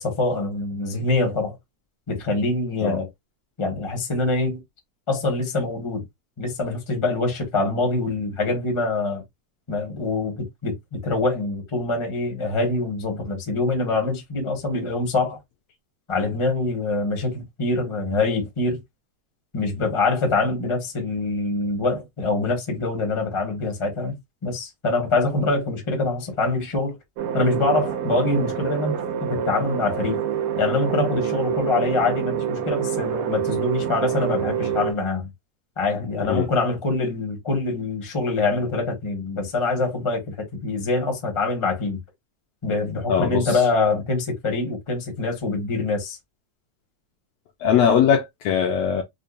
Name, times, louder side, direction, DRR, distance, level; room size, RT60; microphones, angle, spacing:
voice 1, 0.0-1.5 2.1-3.1 3.6-4.6 5.1-6.0 6.4-9.2 9.7-15.4 16.1-18.8 19.5-24.1 24.4-27.0 27.3-30.2 30.6-35.3 35.8-42.0 42.6-46.2, left 3 dB, 30° left, 0.5 m, -24 dB
sound 1, 27.2-34.9, right 8 dB, 90° right, 1.2 m, -26 dB
voice 2, 43.1-43.6 47.6-49.0, left 8 dB, 75° left, 1.5 m, -20 dB
5.1 x 2.2 x 2.5 m
omnidirectional pair, 3.4 m